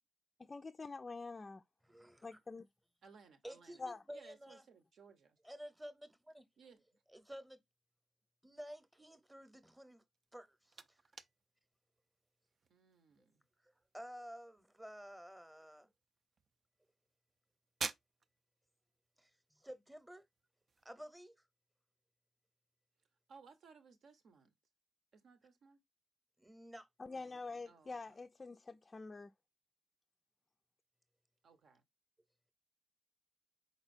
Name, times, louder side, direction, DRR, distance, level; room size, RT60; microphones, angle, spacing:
voice 1, 0.4-1.6 2.2-2.7 3.8-4.0 27.0-29.3, left 3 dB, 35° left, 0.3 m, -46 dB
voice 2, 1.9-2.3 3.4-4.6 5.4-6.4 7.1-7.6 8.4-10.0 10.3-11.0 13.6-15.9 19.2-20.2 20.8-21.3 26.4-26.9, equal, 10° right, 0.8 m, -52 dB
voice 3, 3.0-3.8 4.1-5.4 6.6-7.0 12.7-13.4 23.3-24.5 25.1-25.8 27.6-28.2 31.4-31.8, right 5 dB, 70° right, 0.8 m, -62 dB
sound 1, 10.1-20.9, right 5 dB, 50° right, 0.4 m, -52 dB
4.2 x 4.0 x 2.5 m
supercardioid pair, 60°, 0 cm